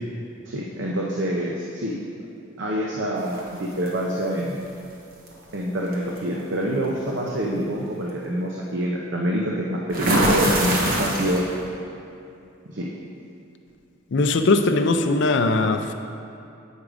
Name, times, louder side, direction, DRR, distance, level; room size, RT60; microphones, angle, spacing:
voice 1, 0.5-2.0 2.6-4.6 5.5-11.5 12.7-12.9, equal, 60° right, -2 dB, 0.7 m, -26 dB
sound 1, 3.3-3.9 5.3-5.4 5.9-6.2 9.9-11.6, right 1 dB, 45° right, 1.2 m, -23 dB
voice 2, 14.1-15.9, left 3 dB, 60° left, 8 dB, 0.4 m, -20 dB
8.3 x 5.0 x 4.9 m, 2.6 s
head